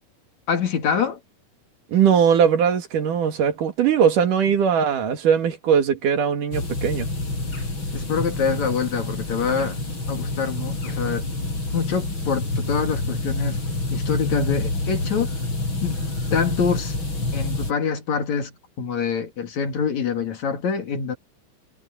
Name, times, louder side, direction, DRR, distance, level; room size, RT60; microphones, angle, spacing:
voice 1, 0.5-1.2 7.9-9.8 10.1-11.3 11.7-13.6 13.9-15.3 15.8-17.0 17.3-21.2, left 6 dB, 60° left, 3.6 m, -25 dB
voice 2, 1.9-7.1, right 7 dB, 80° right, 3.7 m, -20 dB
sound 1, 6.5-17.7, left 2 dB, 35° left, 8.8 m, -28 dB
omnidirectional pair, 3.7 m